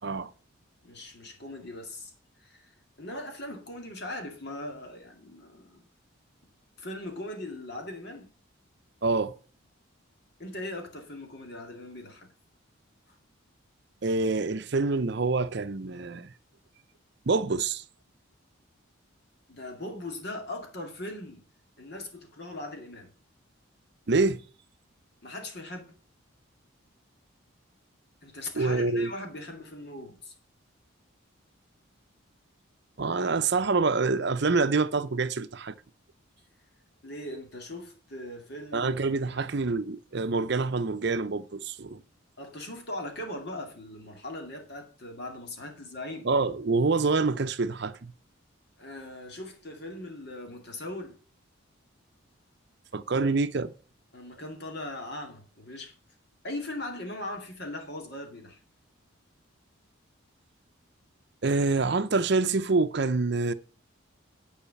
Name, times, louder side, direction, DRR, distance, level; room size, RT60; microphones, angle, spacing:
voice 1, 0.8-2.1 2.4-2.7 3.0-5.9 6.8-8.3 10.4-12.3 13.1-13.2 19.5-21.4 21.8-23.1 25.2-26.0 28.2-30.3 37.0-38.9 39.3-39.4 42.4-46.3 48.8-51.2 54.1-55.9 56.4-58.6, left 1 dB, 50° left, 2.2 m, -39 dB
voice 2, 9.0-9.3 14.0-16.3 17.3-17.8 24.1-24.4 28.6-29.1 33.0-35.7 38.7-42.0 46.2-48.1 52.9-53.7 61.4-63.5, right 3 dB, 55° right, 0.6 m, -26 dB
10.5 x 4.9 x 6.9 m
head